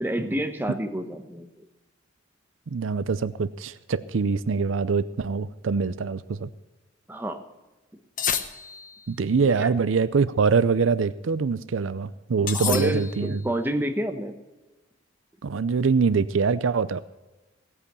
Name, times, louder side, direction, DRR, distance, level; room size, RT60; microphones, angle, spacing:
voice 1, 0.0-1.5 7.1-7.4 9.2-9.7 12.5-14.3, right 1 dB, 10° right, 5 dB, 1.2 m, -29 dB
voice 2, 2.7-6.5 9.1-13.4 15.4-17.0, right 5 dB, 70° right, 15 dB, 0.5 m, -24 dB
sound 1, 8.2-9.1 12.5-13.4, left 8 dB, 40° left, 1.0 m, -30 dB
17.0 x 8.5 x 6.8 m, 1.1 s
head